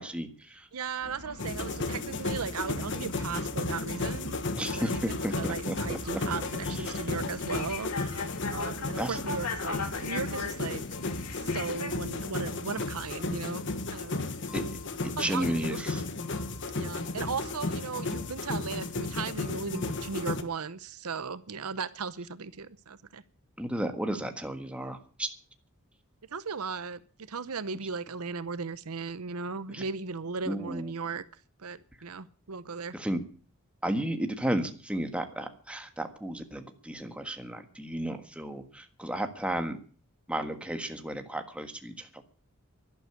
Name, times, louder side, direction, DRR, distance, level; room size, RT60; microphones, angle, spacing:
voice 1, 0.0-0.7 4.5-6.2 6.6-7.0 9.0-9.2 14.5-14.6 15.2-16.0 23.6-25.3 29.7-29.8 30.5-30.9 32.9-33.2 33.8-39.8 40.3-42.2, right 1 dB, 5° right, 6 dB, 1.5 m, -33 dB
voice 2, 0.7-4.4 4.7-13.6 13.9-14.1 15.2-15.8 16.8-23.2 26.3-27.0 27.3-31.2 31.6-33.0, right 5 dB, 80° right, 15 dB, 0.8 m, -37 dB
sound 1, 1.0-12.0, left 3 dB, 90° left, 2.4 m, -40 dB
sound 2, 1.4-20.4, left 3 dB, 55° left, 1.4 m, -34 dB
12.0 x 11.5 x 8.2 m, 0.42 s
head